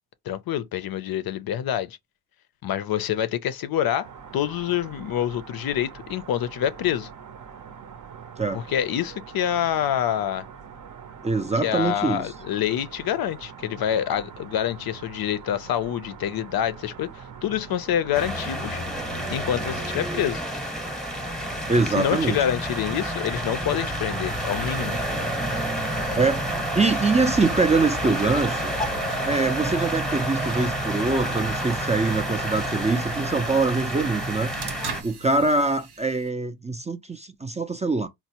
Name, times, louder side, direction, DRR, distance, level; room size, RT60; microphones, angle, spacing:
voice 1, 0.3-2.0 2.6-4.1 4.3-7.1 8.5-10.5 11.6-18.8 19.3-20.4 22.0-25.0, left 10 dB, 65° left, 0.5 m, -26 dB
sound 1, 4.0-20.1, right 6 dB, 50° right, 0.6 m, -43 dB
voice 2, 11.2-12.3 21.7-22.4 26.2-26.5 26.7-28.8 29.2-34.5 35.0-38.1, right 3 dB, 20° right, 0.3 m, -24 dB
sound 2, 18.1-35.0, right 1 dB, ahead, 0.8 m, -29 dB
sound 3, 24.3-36.3, right 3 dB, 90° right, 0.9 m, -41 dB
4.2 x 2.0 x 2.8 m
cardioid pair, 120°, 39 cm